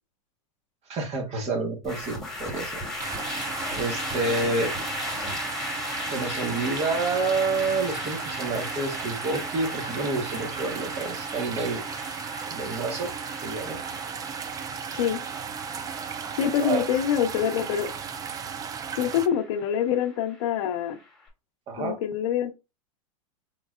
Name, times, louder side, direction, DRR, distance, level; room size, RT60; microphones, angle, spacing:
voice 1, 0.9-2.8 3.8-4.7 6.1-11.8 12.5-13.1 13.4-13.8 16.6-16.8 21.7-22.0, right 3 dB, 35° right, 1.4 m, -28 dB
sound 1, 1.8-21.1, left 2 dB, 5° left, 1.7 m, -37 dB
sound 2, 3.0-19.3, right 6 dB, 20° right, 0.4 m, -35 dB
voice 2, 16.4-17.9 19.0-21.0 21.8-22.5, left 9 dB, 65° left, 0.8 m, -25 dB
4.6 x 3.6 x 2.4 m
supercardioid pair, 125°, 18 cm